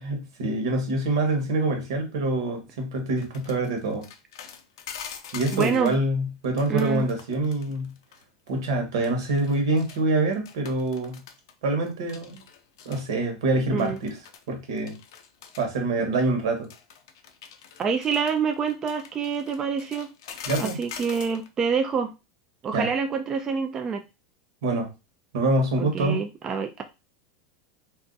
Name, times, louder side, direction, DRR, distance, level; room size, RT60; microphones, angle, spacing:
voice 1, 0.0-4.1 5.3-7.9 8.5-11.2 11.6-12.4 12.8-14.2 14.5-15.0 15.6-16.7 20.4-20.8 22.7-22.9 24.6-24.9 25.3-26.2, right 2 dB, 80° right, 4 dB, 1.2 m, -25 dB
sound 1, 3.2-6.0 6.4-8.2 8.5-8.7 9.0-10.0 10.3-11.5 11.9-13.0 13.8-14.5 14.8-15.7 16.6-21.5, left 7 dB, 80° left, 0.5 m, -43 dB
voice 2, 5.5-6.0 6.7-7.1 13.7-14.0 16.0-16.1 17.8-20.1 20.6-22.1 22.6-24.0 25.8-26.8, right 6 dB, 20° right, 5 dB, 0.3 m, -27 dB
2.4 x 2.4 x 3.8 m, 0.27 s
supercardioid pair, 145°, 2 cm